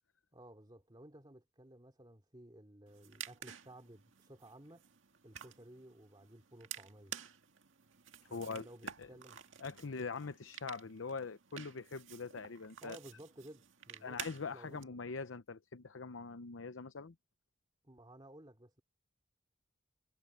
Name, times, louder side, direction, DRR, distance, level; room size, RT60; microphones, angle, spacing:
voice 1, 0.3-4.9 5.2-7.1 8.3-9.4 12.8-14.2 14.5-15.0 17.8-18.8, right 1 dB, 25° right, 2.7 m, -56 dB
sound 1, 2.9-14.8, right 9 dB, 85° right, 1.9 m, -51 dB
voice 2, 8.3-8.7 9.0-9.1 9.6-13.0 14.0-17.1, left 4 dB, 85° left, 0.8 m, -43 dB
head